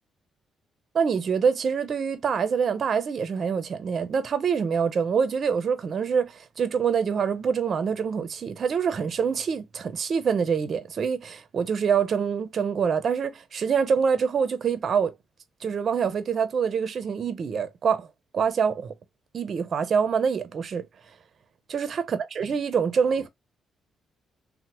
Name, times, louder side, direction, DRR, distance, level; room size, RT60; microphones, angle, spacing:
voice 1, 0.9-15.1 15.6-18.1 18.3-18.9 19.3-20.8 21.7-23.3, right 6 dB, 50° right, 0.5 m, -25 dB
2.8 x 2.0 x 2.8 m
cardioid pair, 90°, 0 cm